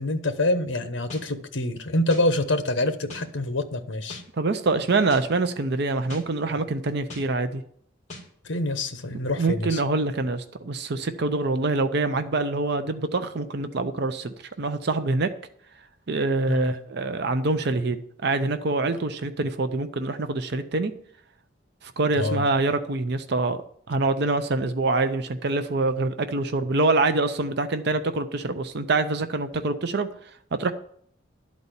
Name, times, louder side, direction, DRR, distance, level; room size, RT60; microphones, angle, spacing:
voice 1, 0.0-4.2 8.4-9.8 16.5-16.8 22.1-22.4, left 1 dB, 70° left, 9 dB, 1.0 m, -26 dB
sound 1, 1.1-1.2 2.1-2.2 3.1-3.2 4.1-4.2 5.1-5.2 6.1-6.2 7.1-7.2 8.1-8.2, left 2 dB, 35° left, 2.5 m, -39 dB
voice 2, 4.4-7.6 9.4-15.3 16.1-20.9 21.8-23.6 23.9-30.1 30.5-30.7, right 3 dB, 60° right, 9 dB, 0.6 m, -25 dB
12.0 x 4.2 x 8.1 m, 0.64 s
head